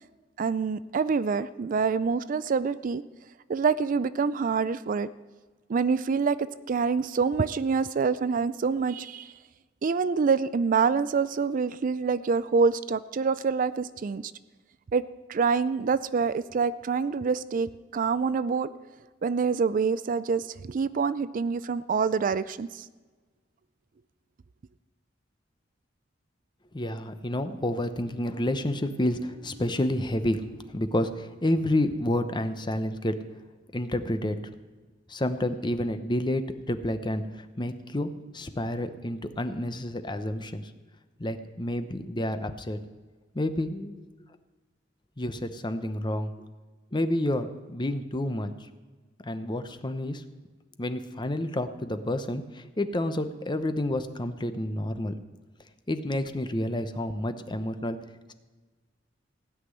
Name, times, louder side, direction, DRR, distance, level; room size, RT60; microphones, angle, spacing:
voice 1, 0.4-3.0 3.5-5.1 5.7-6.4 6.7-9.3 9.8-14.3 14.9-15.0 15.3-18.7 19.2-22.8, right 5 dB, 45° right, 16 dB, 0.4 m, -26 dB
voice 2, 26.7-33.2 33.7-34.4 35.1-40.6 41.2-42.8 43.3-44.0 45.2-46.3 46.9-48.7 49.2-50.2 50.8-55.1 55.9-58.0, left 1 dB, 25° left, 9 dB, 0.8 m, -29 dB
Bowed string instrument, 27.5-31.6, equal, 70° right, 2.5 m, -52 dB
16.5 x 6.0 x 9.7 m, 1.3 s
head